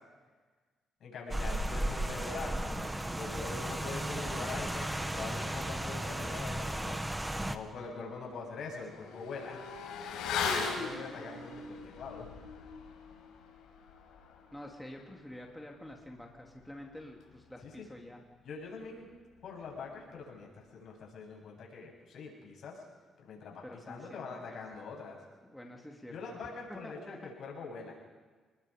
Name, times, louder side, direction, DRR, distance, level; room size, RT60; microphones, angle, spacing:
voice 1, 1.0-7.0 7.5-9.6 10.4-12.3 17.6-17.9 18.4-19.1 19.4-22.8 23.2-25.2 26.1-28.0, left 4 dB, 65° left, -1 dB, 8.0 m, -44 dB
Rain, 1.3-7.6, right 1 dB, 10° right, 1.3 m, -35 dB
Motorcycle / Accelerating revving vroom, 7.2-7.3 7.7-17.7 18.0-18.1, left 5 dB, 90° left, 5.3 m, -40 dB
voice 2, 14.5-18.2 23.6-24.6 25.5-27.3, left 1 dB, 5° left, 0 dB, 2.7 m, -48 dB
29.0 x 20.5 x 5.1 m, 1.4 s
cardioid pair, 90°, 0 cm